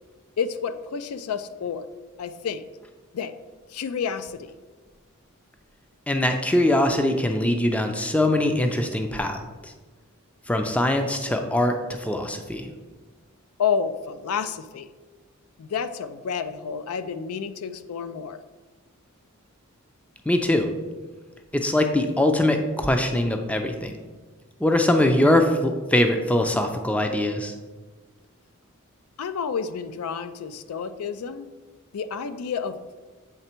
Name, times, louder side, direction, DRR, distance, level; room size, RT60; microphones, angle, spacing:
voice 1, 0.4-1.9 2.2-2.6 3.1-3.3 3.7-4.5 13.6-14.9 15.6-18.4 29.2-31.5 31.9-32.8, left 6 dB, 85° left, 11 dB, 0.4 m, -30 dB
voice 2, 6.1-9.7 10.5-12.7 20.3-20.7 21.5-23.9 24.6-27.5, left 1 dB, 5° left, 5 dB, 0.4 m, -22 dB
8.0 x 3.3 x 4.4 m, 1.3 s
head